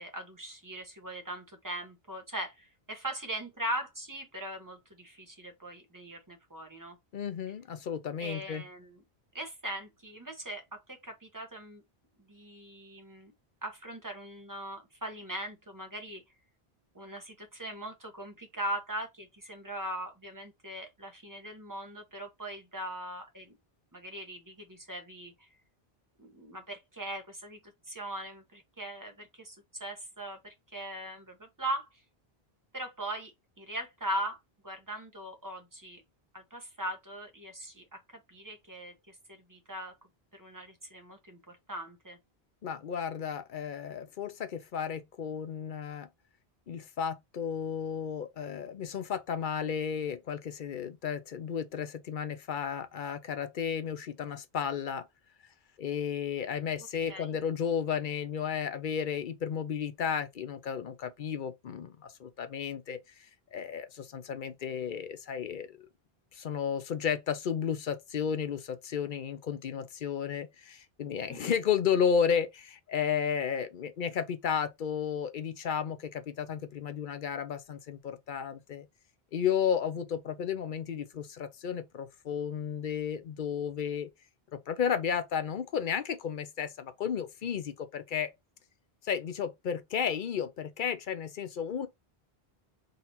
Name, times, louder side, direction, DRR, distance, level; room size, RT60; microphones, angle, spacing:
voice 1, 0.0-7.0 8.2-9.0 9.3-11.8 12.3-13.3 13.6-16.2 16.9-23.5 23.9-25.3 26.2-27.6 27.9-31.9 32.7-33.3 33.6-34.4 34.6-36.0 36.3-38.0 38.3-39.1 39.5-39.9 40.3-42.2 57.1-57.3 71.3-71.5, right 1 dB, 20° right, 1.1 m, -40 dB
voice 2, 7.1-8.6 42.6-46.1 46.7-55.0 55.8-63.0 63.5-65.9 66.3-78.9 79.3-84.1 84.5-88.3 89.0-91.9, left 7 dB, 55° left, 0.7 m, -33 dB
3.9 x 2.8 x 4.2 m
omnidirectional pair, 1.0 m